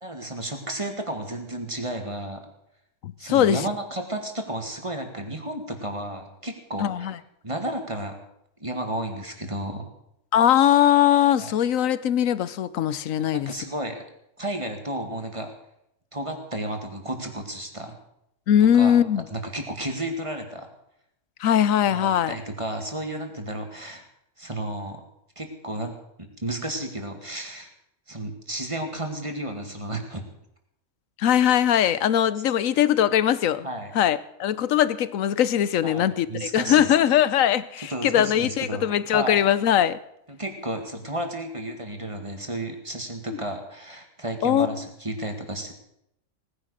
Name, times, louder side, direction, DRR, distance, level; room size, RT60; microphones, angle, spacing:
voice 1, 0.0-2.5 3.2-7.1 7.4-8.2 8.6-9.9 11.4-11.5 13.2-14.0 14.4-15.5 16.1-18.0 18.6-19.0 19.3-20.7 21.9-24.0 24.4-25.0 25.4-27.7 28.1-30.2 33.6-33.9 35.8-36.9 37.9-39.4 40.3-45.7, right 1 dB, 25° right, 5 dB, 2.1 m, -32 dB
voice 2, 3.0-3.6 6.8-7.2 10.3-13.5 18.5-19.2 21.4-22.3 31.2-33.7 33.9-40.0 43.3-43.4 44.4-44.9, left 10 dB, 75° left, 17 dB, 1.1 m, -21 dB
18.5 x 10.0 x 6.5 m, 0.78 s
omnidirectional pair, 1.4 m